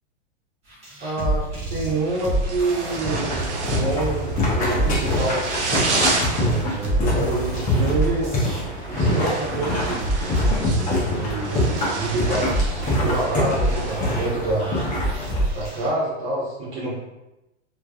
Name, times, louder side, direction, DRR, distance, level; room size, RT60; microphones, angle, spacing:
sound 1, 0.7-15.9, right 1 dB, 20° right, 1.2 m, -29 dB
voice 1, 1.0-5.5 6.4-8.3 8.9-10.1 11.1-14.7 15.5-17.0, right 2 dB, 55° right, -10 dB, 1.3 m, -27 dB
sound 2, 1.9-14.0, right 3 dB, 90° right, 0.7 m, -31 dB
sound 3, 3.0-15.4, left 1 dB, 25° left, 1.0 m, -25 dB
3.3 x 3.0 x 2.4 m, 0.93 s
supercardioid pair, 140°, 34 cm